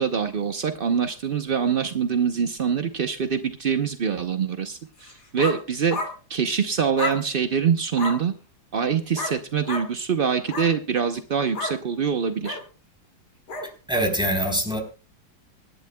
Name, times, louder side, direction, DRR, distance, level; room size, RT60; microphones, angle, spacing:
voice 1, 0.0-6.0 6.3-8.3 8.7-12.6, right 6 dB, 65° right, 8 dB, 0.5 m, -24 dB
sound 1, 5.0-5.6 5.9-6.1 7.0-7.2 7.9-8.2 9.1-9.4 9.7-9.9 10.4-10.7 11.5-11.8 12.4-12.6 13.5-13.7, left 3 dB, 60° left, 3.1 m, -30 dB
voice 2, 13.9-14.8, right 1 dB, ahead, 2 dB, 3.5 m, -23 dB
25.0 x 11.5 x 2.2 m, 0.32 s
omnidirectional pair, 2.1 m